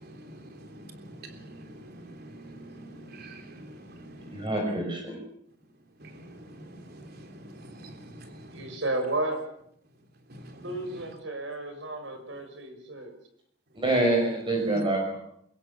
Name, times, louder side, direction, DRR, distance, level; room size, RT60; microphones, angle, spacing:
voice 1, 0.0-4.5 6.0-8.8 10.3-10.6 14.7-14.8, right 1 dB, 55° right, 5 dB, 3.5 m, -45 dB
voice 2, 4.3-5.2 13.7-15.2, right 2 dB, 25° right, 1 dB, 5.9 m, -26 dB
voice 3, 8.5-9.4 10.6-13.1, right 2 dB, 85° right, 7 dB, 6.3 m, -32 dB
23.5 x 22.0 x 7.1 m, 0.70 s
head